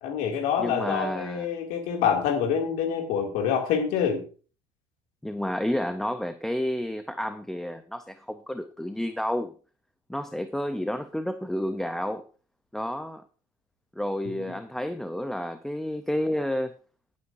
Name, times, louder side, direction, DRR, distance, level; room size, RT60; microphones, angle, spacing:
voice 1, 0.0-4.2 14.3-14.4, left 7 dB, 75° left, 2.4 m, -26 dB
voice 2, 0.6-1.5 5.2-9.5 10.1-12.3 12.7-13.2 14.0-16.7, left 1 dB, 5° left, 0.6 m, -30 dB
17.5 x 8.5 x 2.6 m
cardioid pair, 120°, 14 cm